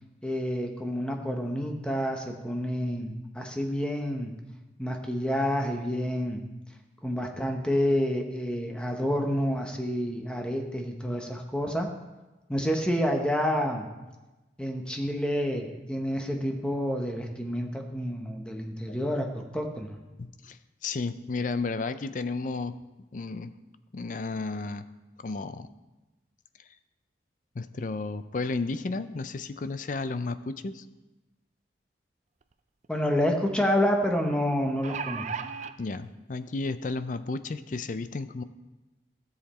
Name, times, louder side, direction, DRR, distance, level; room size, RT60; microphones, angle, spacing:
voice 1, 0.2-4.3 4.8-6.4 7.0-11.9 12.5-13.9 14.6-19.9 32.9-35.2, equal, 5° left, 3 dB, 0.9 m, -28 dB
voice 2, 20.2-22.8 23.1-23.5 23.9-24.9 25.2-25.7 27.5-30.9 35.8-38.4, left 3 dB, 45° left, 12 dB, 0.4 m, -33 dB
sound 1, 32.4-32.5 32.8-32.9 34.5-35.7 36.6-36.7 37.1-37.2, right 6 dB, 40° right, 0.4 m, -35 dB
13.5 x 7.4 x 4.2 m, 1.1 s
head